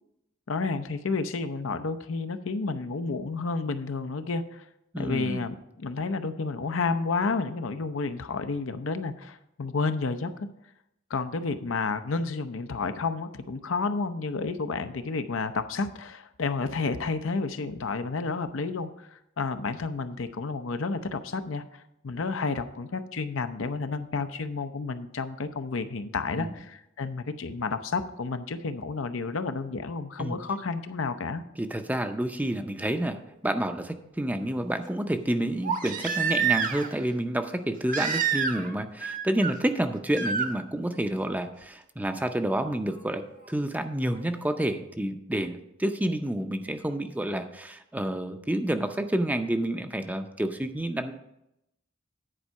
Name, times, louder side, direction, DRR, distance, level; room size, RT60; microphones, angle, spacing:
voice 1, 0.5-4.7 5.0-10.3 11.1-31.4, left 4 dB, 75° left, 9 dB, 0.6 m, -31 dB
voice 2, 4.9-5.4 26.3-26.5 30.2-30.4 31.6-43.2 43.5-51.1, right 1 dB, 10° right, 7 dB, 0.5 m, -29 dB
Crying sobbing, 32.9-33.0 35.6-37.0 37.9-38.7 39.0-39.5 40.1-40.5 42.1-42.2, right 7 dB, 45° right, 0.9 m, -28 dB
10.0 x 4.6 x 6.4 m, 0.84 s
head